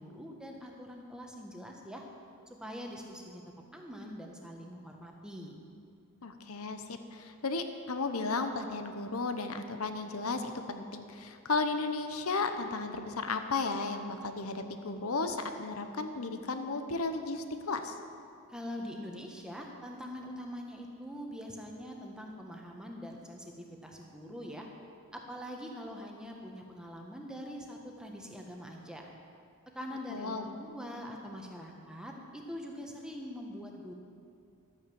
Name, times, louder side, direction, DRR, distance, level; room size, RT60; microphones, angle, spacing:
voice 1, 0.0-2.0 2.5-3.4 3.7-5.5 18.5-24.7 25.1-29.1 29.7-33.9, equal, 5° right, 0 dB, 1.2 m, -43 dB
voice 2, 6.2-17.9 30.1-30.5, left 3 dB, 75° left, 7 dB, 1.0 m, -34 dB
12.5 x 9.0 x 7.1 m, 2.5 s
head